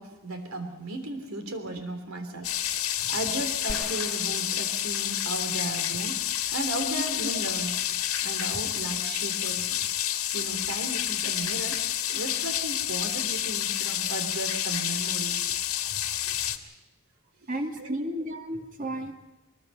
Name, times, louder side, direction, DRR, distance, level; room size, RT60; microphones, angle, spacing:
voice 1, 0.0-9.8 10.3-15.5 16.2-16.3 17.8-17.9, right 2 dB, 75° right, 6 dB, 3.4 m, -36 dB
sound 1, 2.4-16.6, left 11 dB, 85° left, 1.7 m, -29 dB
sound 2, 3.7-5.6 6.0-6.1, equal, ahead, 1.2 m, -43 dB
voice 2, 17.5-19.1, right 1 dB, 40° right, 3 dB, 2.5 m, -33 dB
23.5 x 21.0 x 5.6 m, 1.0 s
head